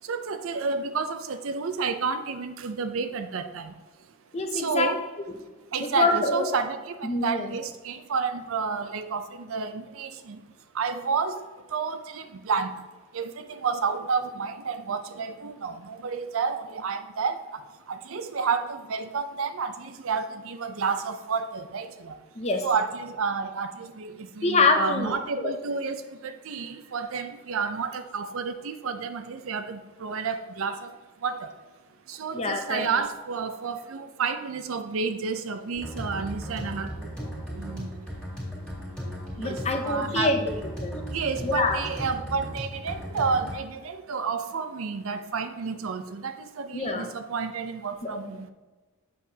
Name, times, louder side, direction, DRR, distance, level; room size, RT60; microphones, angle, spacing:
voice 1, 0.0-3.8 4.5-5.0 5.7-10.4 10.7-12.9 13.1-22.2 22.6-31.5 32.1-37.1 37.5-38.1 39.3-40.3 41.1-48.5, right 5 dB, 65° right, 9 dB, 0.5 m, -30 dB
voice 2, 4.3-4.9 5.3-5.4 5.8-6.6 7.0-7.5 22.4-22.6 24.4-25.5 32.3-32.9 39.4-40.9 41.4-41.8 46.7-47.1 48.0-48.3, left 3 dB, 30° left, 5 dB, 0.6 m, -26 dB
sound 1, 35.7-43.6, equal, 5° left, 2.3 m, -36 dB
7.7 x 6.5 x 2.8 m, 1.2 s
head